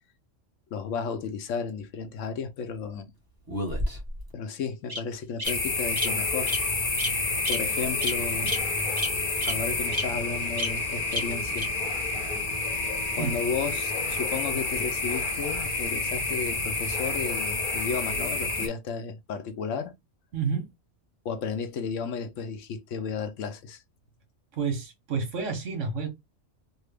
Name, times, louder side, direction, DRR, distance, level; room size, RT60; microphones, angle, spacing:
voice 1, 0.7-3.1 4.3-6.5 7.5-8.6 9.5-11.7 13.1-19.9 21.2-23.8, left 5 dB, 80° left, 1.0 m, -33 dB
Bird vocalization bird call bird song, 3.5-4.2 4.9-5.0 5.4-5.5 6.0-6.1 6.5-6.6 7.0-7.1 7.4-7.6 8.0-8.1 8.5-8.6 9.0-9.1 9.4-9.5 9.9-10.0 10.6-10.7 11.1-11.2 11.6-11.7, left 1 dB, 20° right, 1.0 m, -29 dB
sound 1, 5.4-18.7, left 3 dB, 45° left, 0.9 m, -29 dB
voice 2, 20.3-20.7 24.5-26.1, right 5 dB, 75° right, 1.4 m, -29 dB
3.2 x 2.1 x 3.3 m
omnidirectional pair, 1.3 m